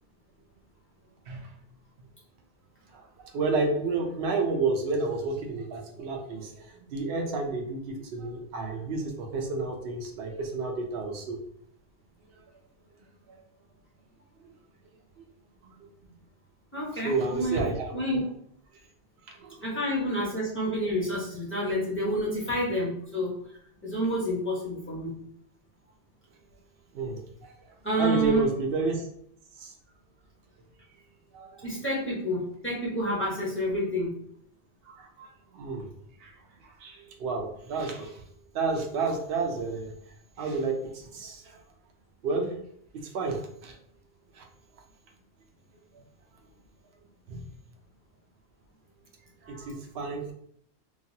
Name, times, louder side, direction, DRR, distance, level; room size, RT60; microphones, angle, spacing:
voice 1, 3.3-11.4 15.6-15.7 17.0-17.9 19.3-19.6 26.9-27.5 28.0-29.1 29.6-29.7 31.3-31.6 34.8-35.9 36.2-36.3 36.8-38.2 38.5-39.9 40.4-41.6 42.2-42.6 43.1-43.8 44.4-44.5 47.3-47.5 49.4-50.3, right 3 dB, 65° right, 1 dB, 0.8 m, -31 dB
voice 2, 16.7-18.2 19.6-23.6 23.8-25.2 27.8-28.5 31.6-34.2, equal, 10° left, -7 dB, 0.9 m, -29 dB
3.2 x 2.4 x 2.7 m, 0.68 s
omnidirectional pair, 1.1 m